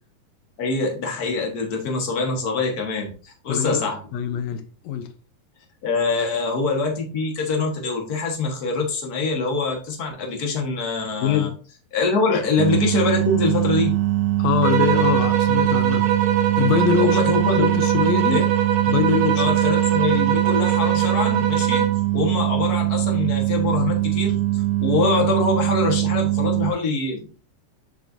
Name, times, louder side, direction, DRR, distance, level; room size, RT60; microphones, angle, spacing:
voice 1, 0.6-4.0 5.8-11.5 11.9-13.9 17.0-17.7 18.3-18.4 19.4-27.3, left 3 dB, 45° left, 1.2 m, -24 dB
voice 2, 3.5-3.8 4.1-5.1 11.2-11.6 12.3-12.4 14.4-16.1 16.6-17.2 17.6-18.5 18.9-19.5, left 9 dB, 70° left, 1.8 m, -23 dB
sound 1, 12.6-26.7, right 17 dB, 85° right, 2.1 m, -22 dB
sound 2, 14.6-22.1, right 8 dB, 70° right, 2.1 m, -24 dB
6.8 x 6.4 x 2.6 m
omnidirectional pair, 3.6 m